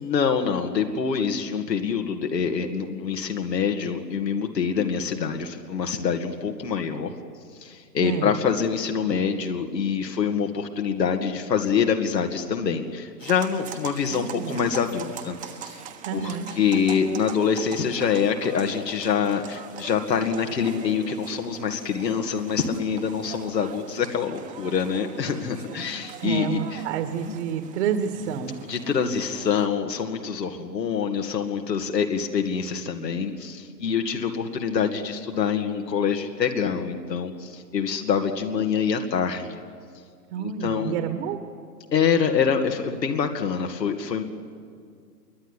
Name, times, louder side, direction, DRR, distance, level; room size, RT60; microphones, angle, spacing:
voice 1, 0.0-7.2 7.6-15.8 16.1-26.9 27.3-27.4 28.6-39.6 40.4-40.9 41.9-44.2, left 6 dB, 80° left, 4 dB, 2.3 m, -25 dB
voice 2, 8.0-8.3 14.1-14.7 16.1-16.5 26.2-28.5 40.3-41.4, right 8 dB, 45° right, 6 dB, 2.0 m, -29 dB
sound 1, 13.2-29.7, right 7 dB, 15° right, 1.3 m, -42 dB
26.5 x 22.5 x 10.0 m, 2.2 s
hypercardioid pair, 135°, 49 cm